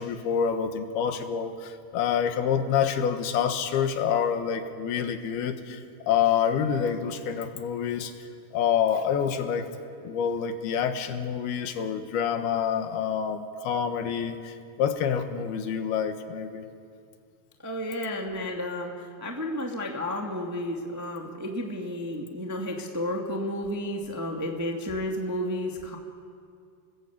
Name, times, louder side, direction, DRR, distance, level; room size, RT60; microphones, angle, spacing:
voice 1, 0.0-8.1 8.5-9.7 10.0-16.6, left 8 dB, 75° left, 7 dB, 3.3 m, -27 dB
voice 2, 17.6-26.0, left 1 dB, 10° right, 1 dB, 0.9 m, -32 dB
29.0 x 20.0 x 8.6 m, 2.3 s
omnidirectional pair, 4.6 m